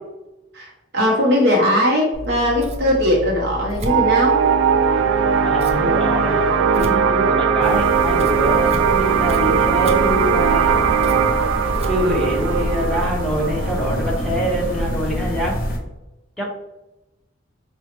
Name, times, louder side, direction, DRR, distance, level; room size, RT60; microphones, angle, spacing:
voice 1, 0.5-4.4, left 1 dB, 60° right, -2 dB, 0.8 m, -19 dB
Scissors, 2.1-12.8, right 1 dB, 35° right, 0.5 m, -31 dB
sound 1, 3.8-14.9, right 6 dB, 90° right, 0.3 m, -19 dB
voice 2, 5.4-10.8 11.9-15.6 16.4-16.5, right 1 dB, 5° left, -3 dB, 0.9 m, -24 dB
sound 2, 7.6-15.8, equal, 50° left, 0.7 m, -27 dB
4.9 x 2.3 x 2.9 m, 0.98 s
head